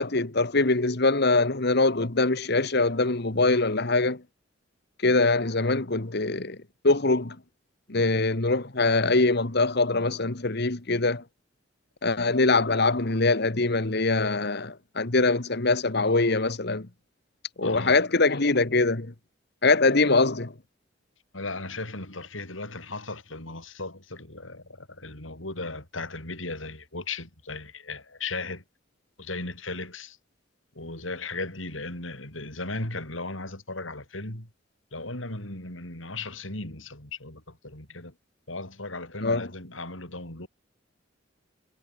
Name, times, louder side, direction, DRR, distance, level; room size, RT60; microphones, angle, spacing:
voice 1, 0.0-4.2 5.0-6.6 6.8-7.4 7.9-11.2 12.0-16.9 17.6-19.1 19.6-20.5 39.2-39.5, left 3 dB, 55° left, 1.6 m, -23 dB
voice 2, 17.6-18.0 21.3-28.6 29.2-30.2 30.8-34.5 34.9-38.1 38.5-40.5, left 3 dB, 85° left, 7.5 m, -36 dB
head